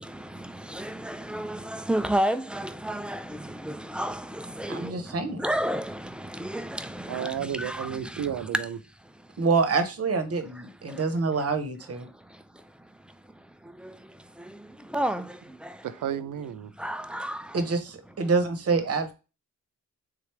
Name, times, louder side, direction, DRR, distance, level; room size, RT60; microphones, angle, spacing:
voice 1, 0.7-3.2 3.6-4.2 4.6-4.9 5.4-6.0 6.4-7.3 7.6-7.9 14.9-15.2 16.8-17.4, right 1 dB, 5° right, 0.3 m, -30 dB
voice 2, 4.7-5.4 9.4-12.1 17.5-19.1, right 4 dB, 50° right, 0.9 m, -26 dB
voice 3, 7.1-8.7 15.8-16.7, right 9 dB, 80° right, 0.6 m, -32 dB
3.7 x 3.2 x 3.2 m
cardioid pair, 105°, 32 cm